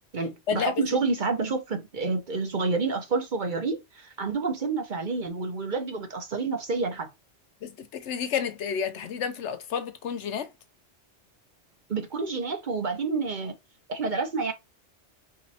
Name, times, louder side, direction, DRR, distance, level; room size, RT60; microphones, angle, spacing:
voice 1, 0.1-7.1 11.9-13.5 13.9-14.5, right 4 dB, 50° right, 0.9 m, -29 dB
voice 2, 7.6-10.5, left 7 dB, 90° left, 1.0 m, -30 dB
4.7 x 3.1 x 2.8 m
omnidirectional pair, 1.2 m